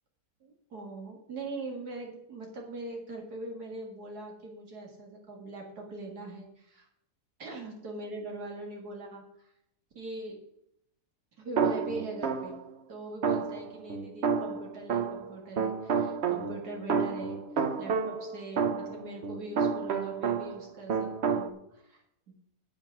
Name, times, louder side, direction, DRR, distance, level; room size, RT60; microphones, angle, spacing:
voice 1, 0.4-6.9 7.4-9.5 10.0-10.4 11.4-12.6 12.9-17.4 17.8-22.0, right 2 dB, 85° right, 0 dB, 2.6 m, -41 dB
sound 1, 11.6-12.7 13.2-20.6 20.9-21.5, right 6 dB, 50° right, 1.0 m, -30 dB
8.8 x 8.7 x 6.0 m, 0.78 s
omnidirectional pair, 1.6 m